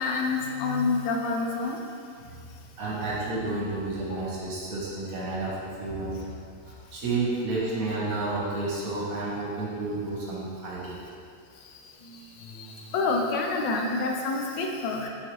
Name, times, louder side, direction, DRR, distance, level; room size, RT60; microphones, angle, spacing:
voice 1, 0.0-1.8 12.0-15.1, left 3 dB, 85° left, 1 dB, 1.3 m, -28 dB
voice 2, 2.8-6.2 6.7-11.0, right 2 dB, 60° right, -6 dB, 1.1 m, -31 dB
4.2 x 3.9 x 3.0 m, 2.3 s
omnidirectional pair, 1.9 m